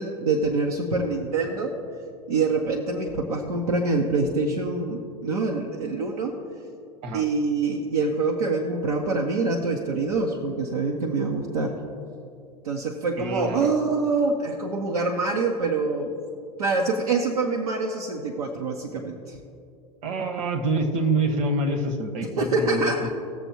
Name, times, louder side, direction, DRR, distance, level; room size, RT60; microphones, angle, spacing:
voice 1, 0.0-1.7 2.3-6.4 7.1-11.7 12.6-16.1 16.6-19.4 22.4-23.1, right 3 dB, 75° right, 0 dB, 1.1 m, -25 dB
voice 2, 13.2-13.7 20.0-23.1, right 2 dB, 55° right, 4 dB, 1.7 m, -26 dB
19.0 x 7.0 x 3.0 m, 2.5 s
figure-of-eight pair, 95°, 20 cm